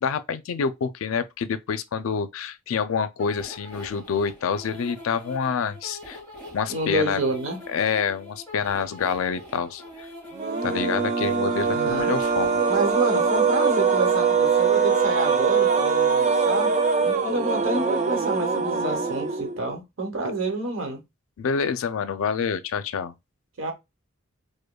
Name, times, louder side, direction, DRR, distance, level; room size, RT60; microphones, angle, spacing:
voice 1, 0.0-6.2 6.5-7.2 7.7-9.8 10.6-12.6 21.4-23.1, left 6 dB, 80° left, 0.4 m, -27 dB
sound 1, 3.2-13.7, left 1 dB, 10° left, 1.5 m, -43 dB
voice 2, 6.7-7.6 11.7-12.1 12.6-16.7 17.0-21.0 23.6-23.7, right 2 dB, 75° right, 1.0 m, -28 dB
sound 2, 10.3-19.7, right 5 dB, 35° right, 0.4 m, -22 dB
5.0 x 2.1 x 2.2 m
head